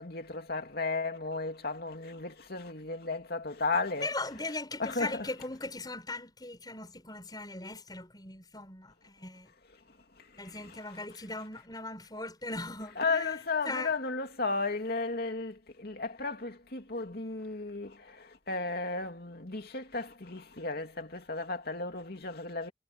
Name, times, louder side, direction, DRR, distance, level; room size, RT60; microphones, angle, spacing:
voice 1, 0.0-4.1 4.8-5.3 10.4-10.8 13.0-22.7, left 3 dB, 55° left, 2.7 m, -34 dB
voice 2, 4.0-9.5 10.4-13.4 13.6-13.9, left 2 dB, 20° left, 6.0 m, -39 dB
head